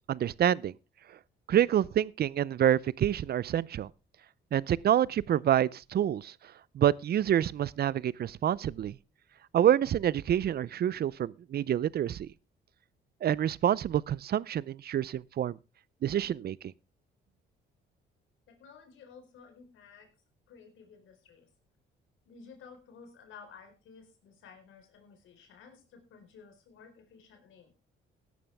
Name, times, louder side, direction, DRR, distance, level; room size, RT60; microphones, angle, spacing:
voice 1, 0.1-0.7 1.5-3.9 4.5-6.3 6.7-9.0 9.5-12.3 13.2-15.6 16.0-16.6, right 10 dB, 50° right, 0.6 m, -27 dB
voice 2, 18.5-20.1 20.5-21.5 22.3-27.7, left 5 dB, 80° left, 4.5 m, -54 dB
16.5 x 11.0 x 3.5 m
cardioid pair, 90°, 20 cm